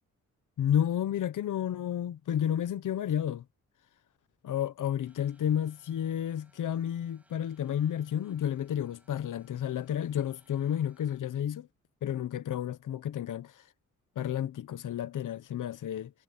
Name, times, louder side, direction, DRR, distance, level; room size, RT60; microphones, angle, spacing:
voice 1, 0.6-3.4 4.4-11.7 12.0-13.6 14.2-16.1, left 10 dB, 70° left, 1.0 m, -31 dB
sound 1, 5.0-11.2, right 1 dB, 5° right, 5.3 m, -68 dB
wide cardioid pair, 155°, 32 cm